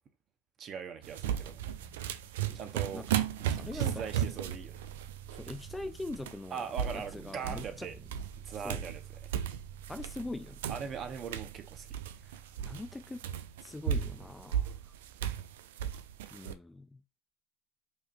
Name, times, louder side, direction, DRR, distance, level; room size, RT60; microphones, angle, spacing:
voice 1, 0.6-1.6 2.5-3.1 3.4-4.8 6.5-8.0 8.4-9.3 10.7-12.0, right 6 dB, 45° right, 0.9 m, -41 dB
sound 1, 1.0-5.7 6.0-7.8 8.1-10.3 10.6-16.5, right 9 dB, 80° right, 0.4 m, -35 dB
sound 2, 1.2-15.2, right 8 dB, 25° right, 1.0 m, -51 dB
voice 2, 2.9-3.3 3.6-4.2 5.3-6.6 6.9-7.9 8.6-8.8 9.9-10.6 12.2-13.2 13.6-14.8 16.3-17.0, left 2 dB, 10° left, 0.3 m, -42 dB
4.8 x 2.7 x 2.5 m
hypercardioid pair, 85°, 0 cm